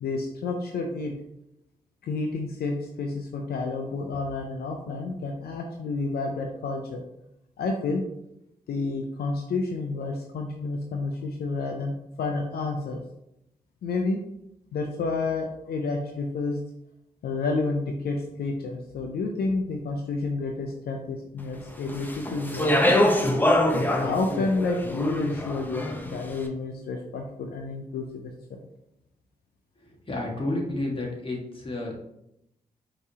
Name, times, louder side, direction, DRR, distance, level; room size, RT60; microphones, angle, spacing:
voice 1, 0.0-1.1 2.0-7.0 7.6-8.0 8.7-13.0 13.8-14.2 14.7-16.6 17.2-23.1 23.7-28.6, left 3 dB, 75° left, 2 dB, 0.5 m, -30 dB
Speech, 21.9-26.2, left 1 dB, 10° left, 0.7 m, -24 dB
voice 2, 30.1-32.0, left 2 dB, 35° left, -2 dB, 1.5 m, -30 dB
4.6 x 2.9 x 2.8 m, 0.81 s
supercardioid pair, 40°, 16 cm